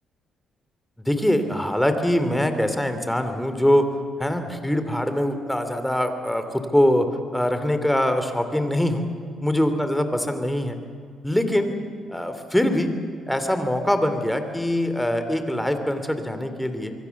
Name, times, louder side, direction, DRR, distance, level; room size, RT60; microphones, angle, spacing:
voice 1, 1.0-3.8 4.2-7.1 7.3-9.1 9.4-10.8 11.2-11.8 12.1-12.9 13.3-16.9, left 1 dB, 5° left, 8 dB, 3.1 m, -23 dB
26.0 x 23.5 x 7.3 m, 2.1 s
cardioid pair, 90°, 0 cm